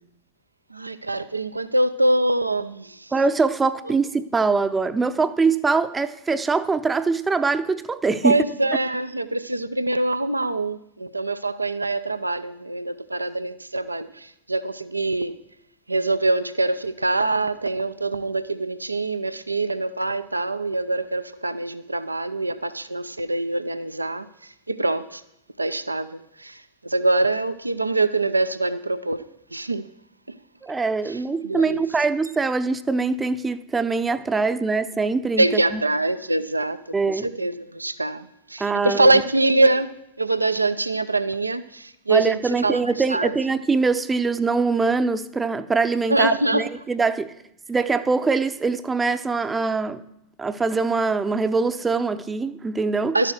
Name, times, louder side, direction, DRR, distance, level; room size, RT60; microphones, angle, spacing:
voice 1, 0.7-3.1 3.8-3.9 8.2-15.4 15.9-25.2 25.6-29.2 29.5-29.9 30.3-30.4 31.0-31.9 35.4-39.9 40.2-43.3 46.1-46.7 53.1-53.3, right 2 dB, 85° right, 0.4 m, -24 dB
voice 2, 3.1-8.4 30.6-35.8 36.9-37.3 38.6-39.1 42.1-47.3 47.7-50.0 50.4-53.2, right 4 dB, 15° right, 0.6 m, -23 dB
12.0 x 7.4 x 6.4 m
figure-of-eight pair, 90°, 0 cm